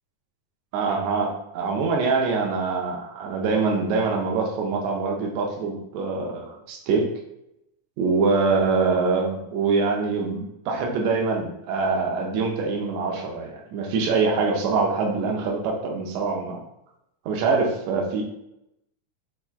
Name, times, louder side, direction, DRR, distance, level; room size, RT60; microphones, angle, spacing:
voice 1, 0.7-7.1 8.0-16.6 17.2-18.2, right 4 dB, 80° right, 1 dB, 1.6 m, -24 dB
5.7 x 2.2 x 2.3 m, 0.84 s
omnidirectional pair, 3.8 m